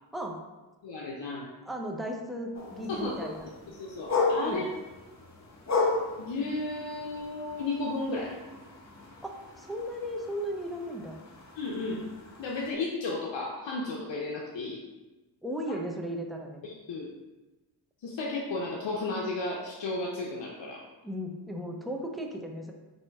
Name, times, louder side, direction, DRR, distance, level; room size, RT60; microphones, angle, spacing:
voice 1, 0.8-1.5 2.9-3.3 3.8-4.6 6.2-8.4 11.6-12.1 12.4-14.8 16.6-17.1 18.0-20.8, left 3 dB, 80° left, -3 dB, 0.6 m, -33 dB
voice 2, 1.6-3.5 4.4-4.7 9.2-11.2 15.4-16.6 21.0-22.7, equal, ahead, 1 dB, 0.5 m, -36 dB
sound 1, 2.5-12.7, left 3 dB, 35° left, 0.8 m, -35 dB
4.3 x 2.6 x 3.3 m, 1.1 s
cardioid pair, 55°, 45 cm